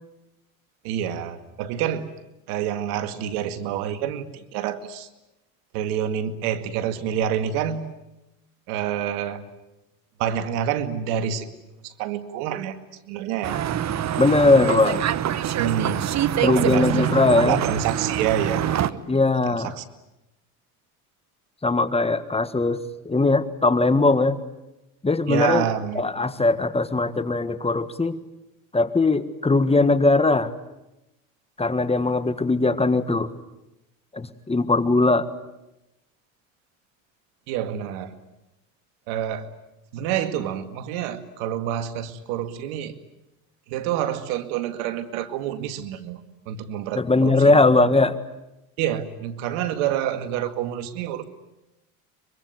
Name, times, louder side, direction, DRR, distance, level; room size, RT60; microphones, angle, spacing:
voice 1, 0.8-2.1 2.5-5.1 5.7-7.9 8.7-9.4 10.2-11.5 11.8-12.8 13.0-13.6 15.6-16.2 16.5-17.2 17.5-19.1 19.4-19.8 25.3-26.0 37.5-38.1 39.1-39.5 39.9-42.9 43.7-47.6 48.8-51.2, right 10 dB, 75° right, 10 dB, 2.2 m, -28 dB
sound 1, 13.4-18.9, right 10 dB, 40° right, 1.2 m, -25 dB
voice 2, 14.2-15.0 16.4-17.6 19.1-19.7 21.6-24.4 25.0-25.6 25.9-28.2 28.7-30.5 31.6-33.3 34.1-35.3 46.9-48.1, left 3 dB, 15° left, 12 dB, 1.6 m, -20 dB
24.0 x 23.5 x 9.4 m, 0.94 s
supercardioid pair, 95°, 43 cm